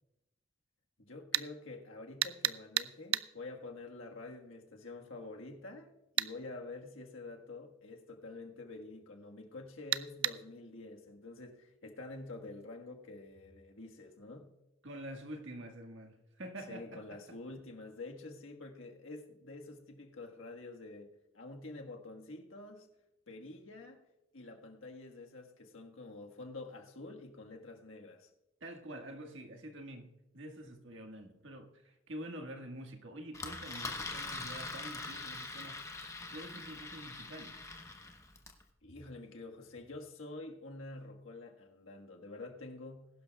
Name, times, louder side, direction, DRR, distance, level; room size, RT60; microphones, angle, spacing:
voice 1, 1.0-14.5 16.7-22.9 23.3-24.0 24.3-28.3 38.8-43.1, left 2 dB, 80° left, 1.5 m, -48 dB
sound 1, 1.3-1.5 2.2-3.3 6.2-6.3 9.9-10.4, right 14 dB, 85° right, 0.4 m, -31 dB
voice 2, 14.8-17.4 28.6-35.8 36.3-37.6, right 1 dB, 70° right, 1.6 m, -47 dB
Engine, 33.3-38.6, left 3 dB, 15° left, 1.0 m, -43 dB
21.0 x 11.5 x 2.3 m
head